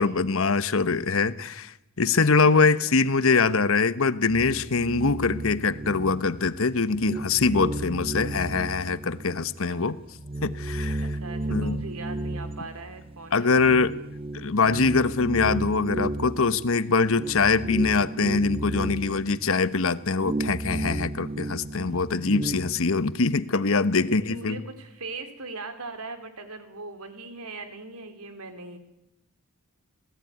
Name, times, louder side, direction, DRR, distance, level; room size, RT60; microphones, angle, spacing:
voice 1, 0.0-9.9 10.4-11.1 11.5-11.8 13.3-13.9 14.3-24.6, left 4 dB, 65° left, 14 dB, 1.1 m, -23 dB
voice 2, 2.4-2.9 9.6-9.8 11.1-13.7 24.0-28.8, right 3 dB, 90° right, 8 dB, 3.5 m, -40 dB
sound 1, 4.3-6.5 6.9-9.6 10.0-22.8, right 1 dB, 25° right, 0.9 m, -33 dB
26.5 x 18.0 x 9.4 m, 0.86 s
head